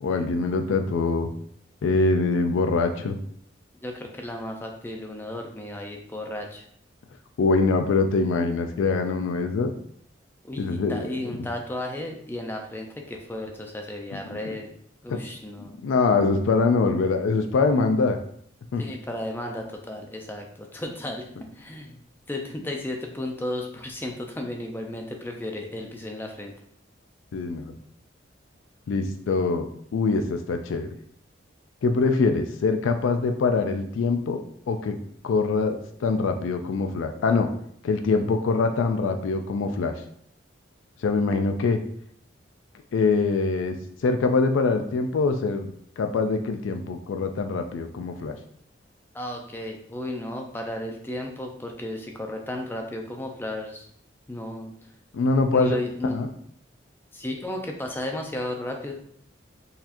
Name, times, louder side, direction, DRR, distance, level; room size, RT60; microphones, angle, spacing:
voice 1, 0.0-1.3 1.8-3.2 7.4-9.7 10.6-11.4 14.3-14.4 15.1-15.2 15.6-18.2 18.7-18.8 27.3-27.7 28.9-30.9 31.8-34.4 34.7-34.9 35.2-37.5 37.8-39.9 41.0-41.8 42.9-43.8 44.0-48.4 55.1-55.8 56.1-56.3, left 4 dB, 90° left, 6 dB, 0.4 m, -24 dB
voice 2, 3.8-6.7 10.4-14.7 15.0-15.7 18.8-21.3 21.5-22.0 22.3-26.5 49.1-53.8 54.3-54.7 55.5-56.2 57.1-58.9, left 1 dB, 10° left, 2 dB, 0.4 m, -34 dB
4.0 x 2.8 x 2.6 m, 0.64 s
head